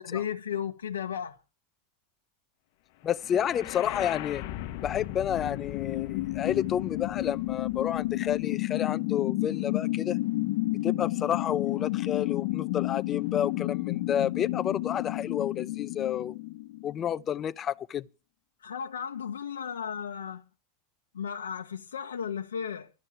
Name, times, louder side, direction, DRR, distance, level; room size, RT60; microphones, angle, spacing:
voice 1, 0.0-1.4 18.6-20.4 21.1-22.9, left 8 dB, 90° left, 1.0 m, -34 dB
voice 2, 3.0-4.4 4.8-10.2 10.8-16.3 16.8-18.0, left 9 dB, 35° left, 0.8 m, -30 dB
sound 1, 3.2-17.2, left 18 dB, 65° left, 1.1 m, -31 dB
13.5 x 6.4 x 9.1 m
hypercardioid pair, 100°, 0 cm